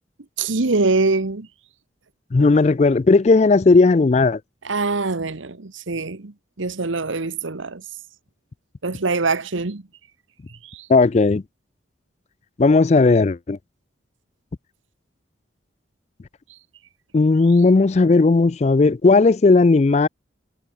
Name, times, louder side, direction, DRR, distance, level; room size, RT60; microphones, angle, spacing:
voice 1, 0.4-1.5 4.6-7.8 8.8-9.8 10.6-10.9, right 3 dB, 85° right, 1.2 m, -24 dB
voice 2, 2.3-4.4 10.9-11.4 12.6-13.6 17.1-20.1, left 3 dB, 35° left, 0.4 m, -15 dB
head